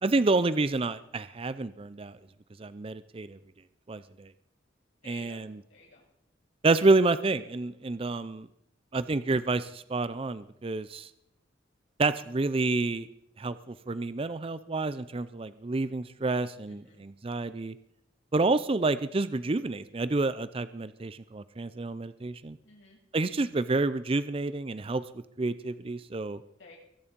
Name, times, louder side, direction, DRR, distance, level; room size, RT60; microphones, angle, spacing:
voice 1, 0.0-2.1 2.6-3.4 3.9-4.3 5.1-5.5 6.6-8.5 8.9-11.1 12.0-13.1 13.4-17.7 18.3-22.6 23.1-25.0 25.4-26.4, right 3 dB, 30° right, 14 dB, 0.5 m, -29 dB
voice 2, 5.0-6.1 7.9-8.1 16.7-17.0 22.6-23.0 26.6-26.8, left 3 dB, 80° left, -3 dB, 7.6 m, -53 dB
22.5 x 9.7 x 5.3 m, 0.80 s
head